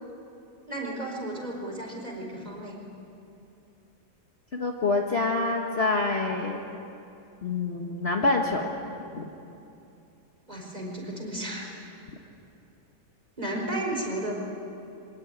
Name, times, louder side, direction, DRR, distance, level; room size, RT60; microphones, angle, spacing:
voice 1, 0.7-2.8 10.5-11.7 13.4-14.3, right 1 dB, 25° right, -1 dB, 4.5 m, -33 dB
voice 2, 4.5-6.6 7.4-8.7 9.1-9.3, left 3 dB, 40° left, 1 dB, 1.6 m, -26 dB
24.5 x 19.0 x 9.4 m, 2.7 s
omnidirectional pair, 1.8 m